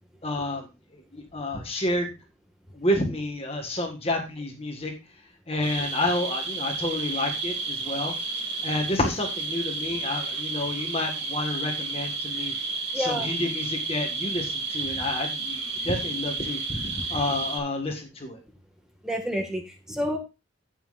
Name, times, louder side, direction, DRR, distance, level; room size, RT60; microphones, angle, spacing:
voice 1, 0.2-0.6 0.9-2.1 2.7-4.9 5.5-8.1 8.6-12.5 12.9-15.6 15.8-18.4, left 1 dB, 30° left, 3 dB, 1.6 m, -29 dB
sound 1, 5.6-17.6, right 3 dB, 55° right, 2.6 m, -31 dB
voice 2, 12.9-13.3 19.0-20.2, equal, 5° right, 2 dB, 1.7 m, -29 dB
17.5 x 5.9 x 2.5 m, 0.27 s
head